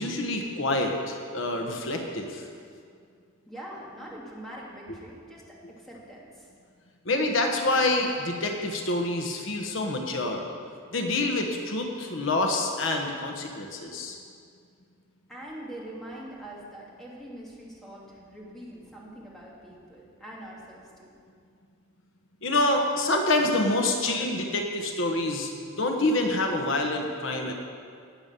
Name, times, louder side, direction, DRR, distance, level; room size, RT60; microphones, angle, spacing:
voice 1, 0.0-2.5 7.0-10.5 10.9-14.2 22.4-27.5, left 2 dB, 65° left, 3 dB, 1.2 m, -27 dB
voice 2, 3.5-6.5 15.3-21.2, right 1 dB, ahead, -5 dB, 2.3 m, -43 dB
18.0 x 7.1 x 6.8 m, 2.3 s
head